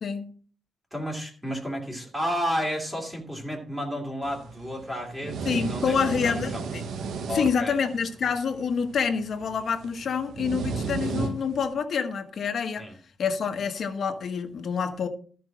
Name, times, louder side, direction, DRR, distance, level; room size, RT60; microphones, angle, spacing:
voice 1, 0.0-0.3 5.4-6.8 7.3-12.9 13.2-15.1, left 6 dB, 50° left, 1.3 m, -27 dB
voice 2, 0.9-6.7 7.3-7.8 12.8-12.9, equal, 10° right, 2.7 m, -32 dB
sound 1, 4.2-11.7, right 5 dB, 80° right, 1.3 m, -35 dB
13.5 x 5.4 x 6.1 m
wide cardioid pair, 165°, 0 cm